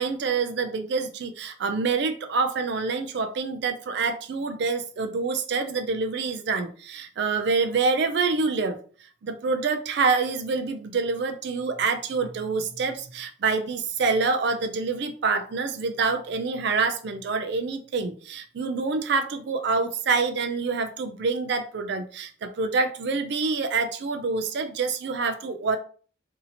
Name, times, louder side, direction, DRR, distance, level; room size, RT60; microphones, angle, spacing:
voice 1, 0.0-8.8 9.2-25.8, right 4 dB, 60° right, 7 dB, 0.4 m, -26 dB
2.8 x 2.7 x 4.0 m, 0.42 s
head